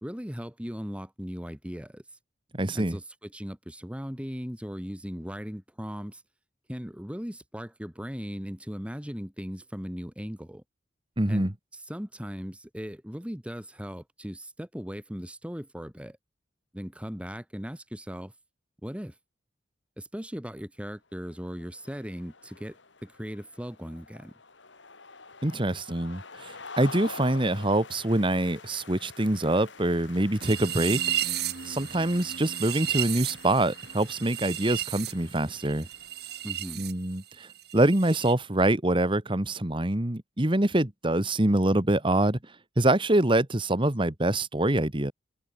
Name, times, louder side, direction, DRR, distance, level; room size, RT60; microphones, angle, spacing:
voice 1, 0.0-2.0 2.7-6.2 6.7-10.6 11.3-16.2 16.7-18.3 18.8-19.1 20.0-24.3 36.4-36.9, equal, 5° right, 2.2 m, -38 dB
voice 2, 2.5-3.0 11.2-11.5 25.4-31.0 31.6-35.9 36.8-37.5 37.7-42.4 42.8-45.1, right 1 dB, 25° right, 1.6 m, -25 dB
sound 1, 21.2-36.8, left 4 dB, 85° left, 4.7 m, -47 dB
sound 2, 30.4-36.9 37.2-38.3, right 11 dB, 60° right, 2.9 m, -33 dB
head